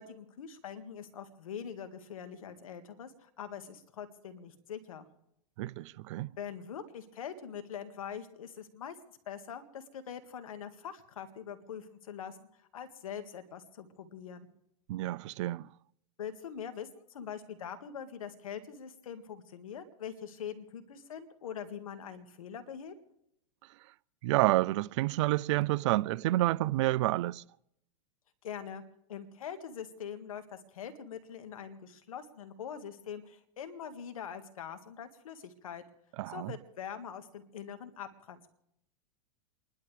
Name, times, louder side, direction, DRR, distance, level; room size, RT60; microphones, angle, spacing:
voice 1, 0.0-5.1 6.4-9.0 9.3-14.5 16.2-22.9 28.4-28.8 29.1-35.8 36.3-38.4, left 8 dB, 85° left, 2.0 m, -43 dB
voice 2, 5.6-6.3 14.9-15.7 24.2-27.4 36.2-36.5, right 17 dB, 60° right, 0.5 m, -29 dB
28.5 x 11.5 x 3.4 m
hypercardioid pair, 125°, 17 cm